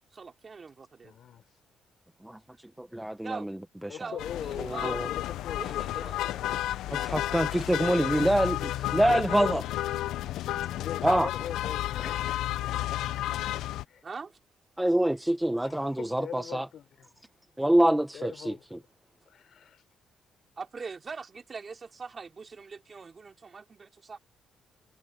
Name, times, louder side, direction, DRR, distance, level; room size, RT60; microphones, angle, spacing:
voice 1, 0.1-1.1 3.2-3.5 4.0-5.0 5.6-6.2 9.3-9.4 14.0-14.4 20.6-24.2, right 5 dB, 35° right, 3.9 m, -42 dB
voice 2, 1.0-1.4 3.9-6.8 9.1-9.7 10.7-12.6 13.1-13.2 13.9-14.0 15.6-17.2 18.1-18.8 19.3-19.8, left 9 dB, 65° left, 4.5 m, -41 dB
voice 3, 2.8-3.5 3.8-4.0 4.6-5.1 6.9-9.6 11.0-11.3 14.8-16.7 17.6-18.5, right 1 dB, 5° right, 1.1 m, -26 dB
sound 1, 4.2-13.8, left 14 dB, 85° left, 0.8 m, -32 dB
cardioid pair, 90°, 0 cm